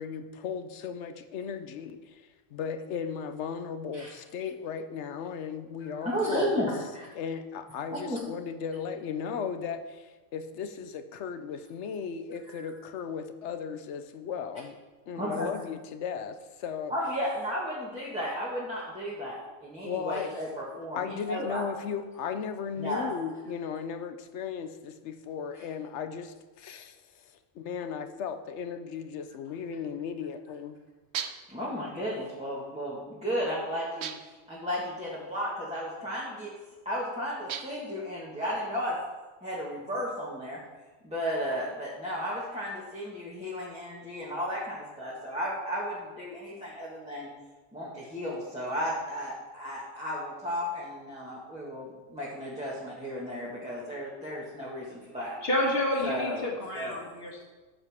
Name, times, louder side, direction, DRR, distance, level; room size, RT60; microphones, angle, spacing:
voice 1, 0.0-6.7 7.1-14.8 15.1-16.9 19.8-20.4 20.9-30.8, left 6 dB, 75° left, 9 dB, 1.0 m, -36 dB
voice 2, 6.0-7.1 8.0-8.2 12.5-12.6 15.1-15.5 16.9-21.7 22.8-23.1 25.5-25.6 31.5-36.5 36.8-39.0 39.4-40.6 41.0-47.3 47.7-55.4 56.0-56.5 56.7-57.0, equal, 5° right, -7 dB, 1.6 m, -34 dB
sound 1, 31.1-31.6 34.0-34.5 37.5-37.9, right 8 dB, 70° right, 0.9 m, -37 dB
voice 3, 55.4-57.4, left 1 dB, 55° left, -2 dB, 2.0 m, -29 dB
13.5 x 7.0 x 3.6 m, 1.3 s
omnidirectional pair, 1.2 m